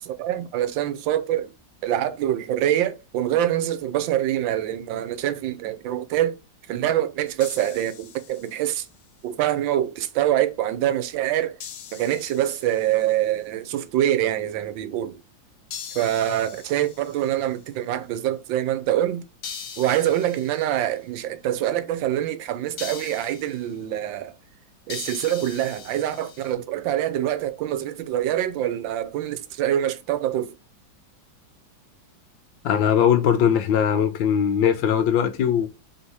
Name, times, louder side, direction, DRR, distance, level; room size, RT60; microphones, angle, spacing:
voice 1, 0.0-1.5 1.8-6.4 6.7-8.9 9.2-11.6 11.9-15.2 15.9-19.2 19.8-24.3 24.9-30.6, right 12 dB, 85° right, 1.3 m, -25 dB
sound 1, 7.4-8.9 11.6-13.2 15.7-17.6 19.4-20.9 22.8-23.7 24.9-26.5, left 7 dB, 65° left, 1.2 m, -41 dB
voice 2, 32.6-35.7, left 8 dB, 90° left, 1.4 m, -20 dB
3.6 x 2.7 x 4.5 m
omnidirectional pair, 2.0 m